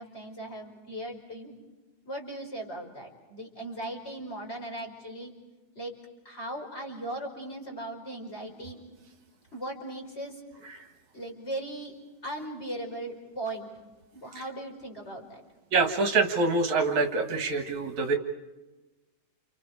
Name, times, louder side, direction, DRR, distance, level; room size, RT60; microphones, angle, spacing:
voice 1, 0.0-1.6 2.1-5.3 5.7-5.9 6.3-8.8 9.5-10.4 11.1-11.9 12.2-13.7 14.1-15.4, right 1 dB, 20° left, 2 dB, 5.3 m, -38 dB
voice 2, 15.7-18.2, right 3 dB, 65° right, 5 dB, 2.9 m, -25 dB
30.0 x 30.0 x 4.8 m, 1.2 s
omnidirectional pair, 3.6 m